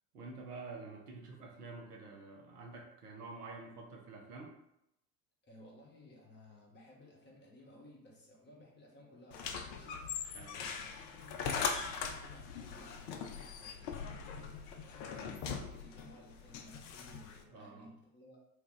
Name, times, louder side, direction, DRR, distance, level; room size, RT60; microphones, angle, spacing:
voice 1, 0.1-4.6 10.3-10.6 17.5-17.9, right 3 dB, 75° right, 1 dB, 0.8 m, -48 dB
voice 2, 5.5-14.1 14.4-18.4, left 1 dB, 20° left, -3 dB, 0.9 m, -58 dB
sound 1, 9.3-17.4, left 6 dB, 50° left, 0.5 m, -41 dB
2.7 x 2.3 x 3.8 m, 0.82 s
figure-of-eight pair, 75°, 47 cm